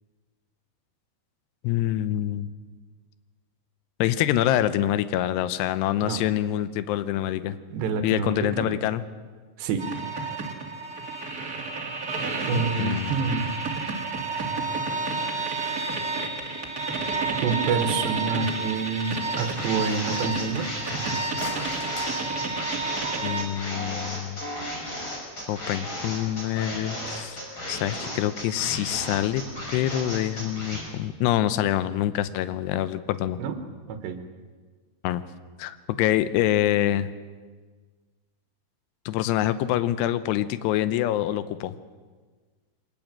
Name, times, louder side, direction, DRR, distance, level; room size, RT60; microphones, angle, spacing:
voice 1, 1.6-2.5 4.0-7.6 8.0-9.0 12.5-13.2 23.2-24.4 25.5-27.4 27.7-29.4 29.7-33.4 35.0-35.2 35.6-37.1 39.1-41.8, left 13 dB, 75° left, 13 dB, 2.7 m, -26 dB
voice 2, 7.7-8.8 9.6-9.8 12.5-13.5 17.4-20.7 33.4-33.6 33.9-34.2, right 5 dB, 70° right, 7 dB, 3.4 m, -27 dB
sound 1, 9.8-23.4, right 4 dB, 35° right, 1.5 m, -30 dB
sound 2, 19.4-30.8, left 1 dB, 25° left, 6.0 m, -34 dB
sound 3, 21.1-23.1, left 2 dB, 50° left, 5.8 m, -40 dB
23.5 x 20.0 x 7.6 m, 1.4 s
omnidirectional pair, 5.4 m